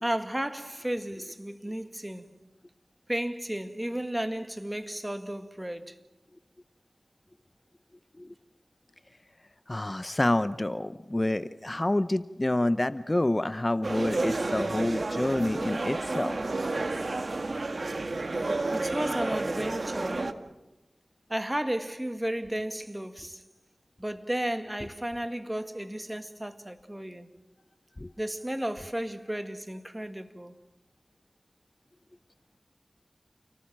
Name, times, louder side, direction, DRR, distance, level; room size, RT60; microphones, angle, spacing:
voice 1, 0.0-2.3 3.1-6.0 18.7-20.4 21.3-23.4 24.0-27.3 28.2-30.5, right 1 dB, 15° right, 2.0 m, -33 dB
voice 2, 9.7-16.4 28.0-28.1, left 1 dB, 30° left, 0.7 m, -28 dB
sound 1, 13.8-20.3, right 2 dB, 65° right, 1.7 m, -31 dB
29.5 x 18.5 x 7.4 m
cardioid pair, 40°, 0 cm